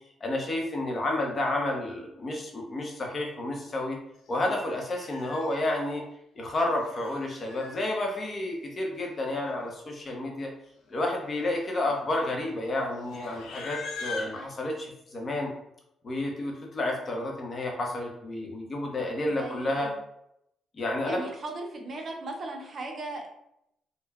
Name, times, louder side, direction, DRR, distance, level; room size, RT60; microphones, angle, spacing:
voice 1, 0.2-4.0 4.3-6.0 6.4-10.5 10.9-15.5 16.0-19.9 20.8-21.2, left 1 dB, 40° left, 0 dB, 0.7 m, -30 dB
Livestock farm animals working animals, 4.3-4.4 4.8-5.8 6.6-7.9 9.0-9.1 9.2-9.7 10.0-10.2 10.9-14.5, left 4 dB, 85° left, 0.5 m, -42 dB
voice 2, 19.3-20.0 21.0-23.3, right 2 dB, 45° right, 2 dB, 0.6 m, -37 dB
3.2 x 2.1 x 2.3 m, 0.78 s
cardioid pair, 90°, 0 cm